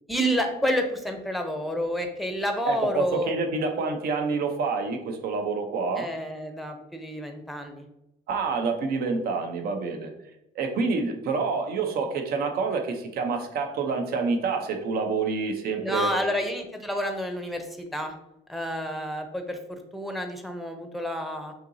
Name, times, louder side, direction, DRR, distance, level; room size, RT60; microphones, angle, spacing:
voice 1, 0.1-3.4 6.0-7.8 15.8-18.1 18.5-21.5, equal, ahead, 5 dB, 0.6 m, -29 dB
voice 2, 2.6-6.1 8.3-10.1 10.6-16.1, right 4 dB, 65° right, 5 dB, 0.8 m, -27 dB
5.8 x 2.8 x 2.7 m, 0.87 s
cardioid pair, 110°, 17 cm